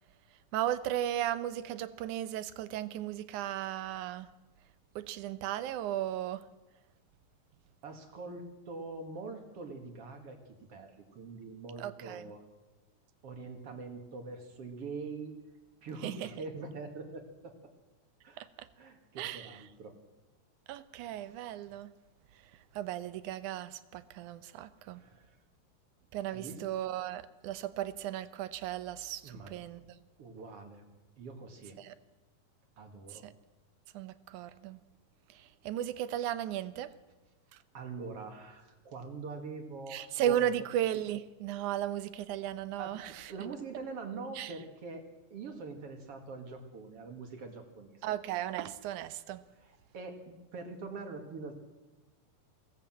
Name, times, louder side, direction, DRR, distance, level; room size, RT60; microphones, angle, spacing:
voice 1, 0.5-4.3 5.0-6.5 11.8-12.2 16.0-16.3 18.4-18.7 19.2-19.6 20.7-21.9 22.7-25.0 26.1-29.8 31.8-32.0 33.1-33.3 33.9-34.8 35.3-36.9 39.9-43.3 44.4-44.5 48.0-49.4, right 11 dB, 75° right, 14 dB, 2.2 m, -35 dB
voice 2, 7.8-10.4 10.7-12.4 13.2-15.3 15.8-17.5 18.2-18.5 18.8-19.9 24.9-25.4 26.3-26.6 29.2-29.5 30.2-30.8 31.2-31.8 32.8-33.3 37.7-40.2 42.8-45.0 45.3-48.0 49.6-51.6, right 4 dB, 50° right, 5 dB, 2.8 m, -44 dB
22.0 x 17.5 x 7.5 m, 1.1 s
omnidirectional pair, 3.8 m